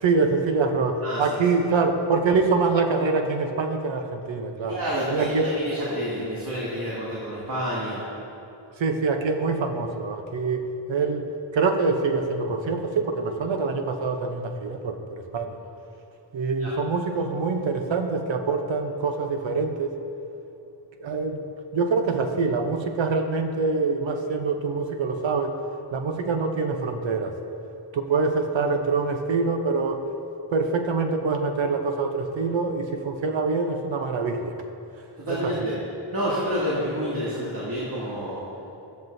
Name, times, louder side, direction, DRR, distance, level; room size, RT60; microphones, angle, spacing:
voice 1, 0.0-4.8 5.1-5.5 8.8-15.6 16.3-20.0 21.0-21.5 21.7-25.6 25.9-27.3 27.9-30.0 30.5-34.5 35.4-35.7, right 4 dB, 70° right, 5 dB, 0.9 m, -25 dB
voice 2, 1.0-1.5 4.7-8.0 16.6-16.7 35.2-35.8 36.1-38.4, equal, 45° right, -7 dB, 2.4 m, -28 dB
14.0 x 13.5 x 2.7 m, 2.8 s
wide cardioid pair, 125°, 47 cm